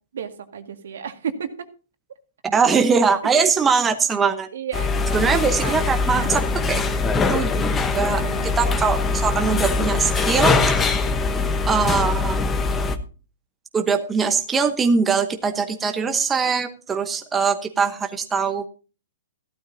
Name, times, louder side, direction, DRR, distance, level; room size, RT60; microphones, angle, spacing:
voice 1, 0.1-1.7 3.4-3.5 4.5-5.9 8.1-8.6, right 7 dB, 75° right, 7 dB, 2.0 m, -33 dB
voice 2, 2.4-4.5 5.1-7.0 7.3-10.9 11.7-12.4 13.7-18.6, right 5 dB, 10° right, 6 dB, 0.9 m, -22 dB
sound 1, 4.7-13.0, left 4 dB, 10° left, 1.0 m, -22 dB
15.0 x 12.5 x 2.7 m, 0.35 s
hypercardioid pair, 160°, 0 cm